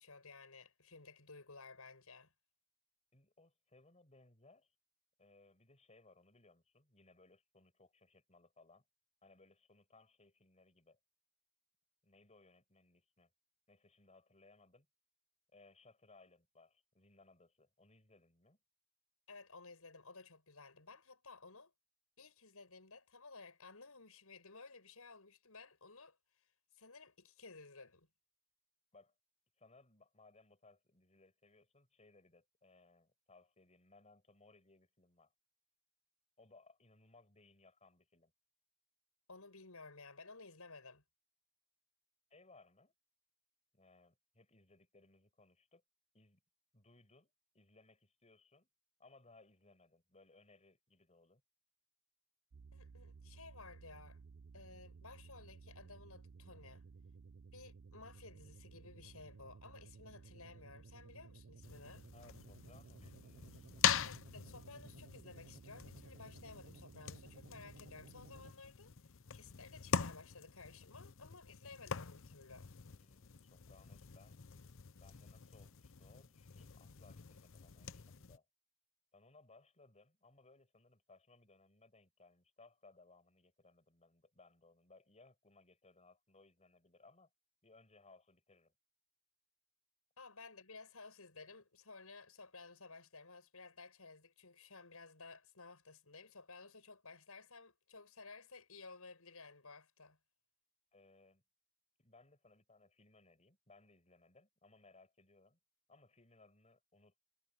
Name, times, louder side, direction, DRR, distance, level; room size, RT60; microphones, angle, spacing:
voice 1, 0.0-2.3 19.3-21.7 22.2-28.1 39.3-41.0 52.7-54.2 54.5-56.8 57.5-62.0 64.0-72.7 90.2-100.2, left 4 dB, 90° left, 6.3 m, -56 dB
voice 2, 3.1-4.7 5.2-8.8 9.2-11.0 12.0-13.3 13.7-14.9 15.5-18.6 28.9-29.1 29.6-35.3 36.4-38.3 42.3-42.9 43.7-45.8 46.1-46.4 46.7-48.7 49.0-51.4 62.1-63.8 72.9-74.4 75.0-78.4 79.1-87.3 87.6-88.7 100.9-101.4 102.0-105.6 105.9-107.2, left 3 dB, 30° left, 6.9 m, -65 dB
sound 1, 52.5-68.5, right 4 dB, 60° right, 0.5 m, -57 dB
sound 2, 61.6-78.4, left 8 dB, 65° left, 0.8 m, -43 dB
head